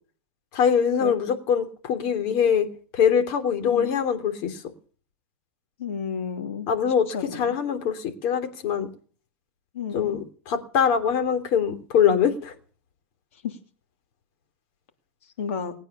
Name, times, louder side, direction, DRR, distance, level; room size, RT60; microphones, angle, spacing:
voice 1, 0.5-2.7 2.9-4.6 6.7-7.1 7.3-8.9 9.9-12.5, left 7 dB, 55° left, 3.3 m, -23 dB
voice 2, 3.6-4.0 5.8-6.7 7.1-7.5 9.7-10.2 13.4-13.6 15.4-15.7, left 6 dB, 80° left, 3.0 m, -31 dB
20.5 x 9.1 x 6.8 m
supercardioid pair, 125°, 7 cm